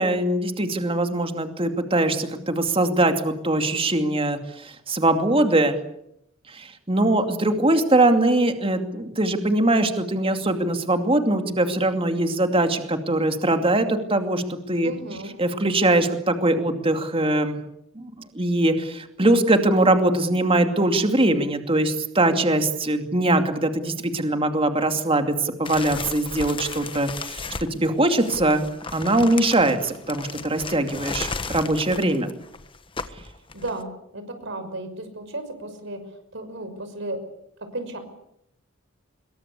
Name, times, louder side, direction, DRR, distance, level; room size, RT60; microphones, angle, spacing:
voice 1, 0.0-5.8 6.5-14.9 15.4-17.6 17.9-28.6 28.9-32.3, right 2 dB, 25° right, 7 dB, 2.6 m, -22 dB
voice 2, 14.8-15.3 33.5-37.2 37.6-38.0, right 1 dB, 60° right, 8 dB, 6.0 m, -34 dB
sound 1, 25.7-33.8, left 4 dB, 25° left, 1.4 m, -35 dB
25.5 x 22.5 x 8.5 m, 0.78 s
head